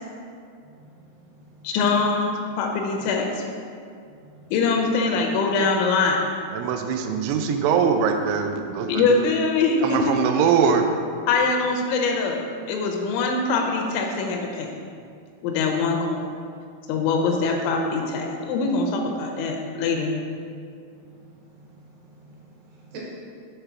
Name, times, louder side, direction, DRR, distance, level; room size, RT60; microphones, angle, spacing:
voice 1, 0.6-1.7 4.1-4.5 21.0-23.0, right 3 dB, 70° right, -4 dB, 2.8 m, -49 dB
voice 2, 1.6-3.4 4.5-6.2 8.9-10.2 11.3-12.4 12.7-14.7 15.4-16.2 16.9-20.1, left 4 dB, 85° left, 2 dB, 3.0 m, -23 dB
voice 3, 6.5-9.3 9.8-10.9, right 6 dB, 90° right, 5 dB, 3.1 m, -22 dB
7.9 x 3.3 x 6.0 m, 2.3 s
omnidirectional pair, 5.4 m